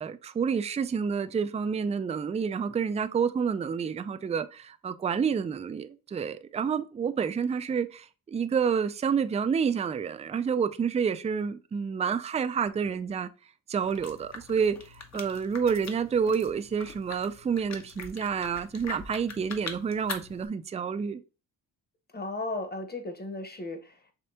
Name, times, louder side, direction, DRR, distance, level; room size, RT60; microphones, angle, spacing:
voice 1, 0.0-13.3 13.7-21.2, right 6 dB, 20° right, 0.3 m, -29 dB
sound 1, 13.8-20.5, left 4 dB, 40° left, 0.9 m, -43 dB
voice 2, 22.1-24.1, left 2 dB, 25° left, 1.1 m, -35 dB
5.1 x 3.3 x 2.8 m
cardioid pair, 85°, 40 cm